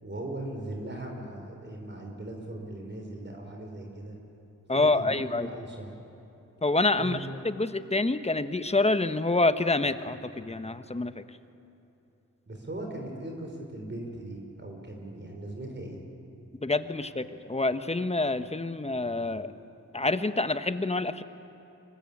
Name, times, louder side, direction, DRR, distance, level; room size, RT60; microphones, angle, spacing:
voice 1, 0.0-4.2 4.7-5.9 7.0-7.2 12.5-16.0, right 1 dB, 35° right, 1 dB, 4.9 m, -39 dB
voice 2, 4.7-5.5 6.6-7.2 7.4-11.2 16.6-19.5 19.9-21.2, left 2 dB, 20° left, 11 dB, 1.2 m, -27 dB
24.5 x 19.0 x 8.7 m, 2.9 s
cardioid pair, 50°, 32 cm